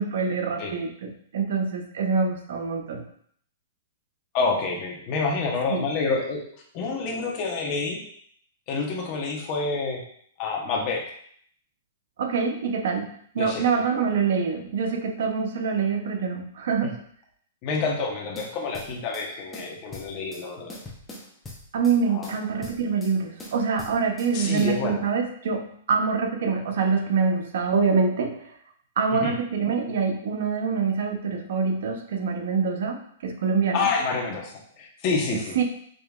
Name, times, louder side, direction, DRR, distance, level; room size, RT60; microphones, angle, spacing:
voice 1, 0.0-3.0 5.7-5.8 12.2-17.0 21.7-28.5 29.0-33.9 35.5-35.6, right 5 dB, 70° right, 3 dB, 0.7 m, -25 dB
voice 2, 4.3-6.4 6.7-8.0 8.7-10.0 10.4-11.0 13.4-13.6 17.6-20.8 22.1-22.3 24.3-25.0 29.1-29.3 33.7-35.5, left 4 dB, 40° left, 0 dB, 1.0 m, -28 dB
sound 1, 18.4-19.3 19.5-20.4 20.7-22.0 22.2-23.1 23.4-24.3 24.6-24.8, left 1 dB, 10° left, 0.8 m, -42 dB
5.1 x 2.8 x 2.4 m, 0.63 s
hypercardioid pair, 145°, 0 cm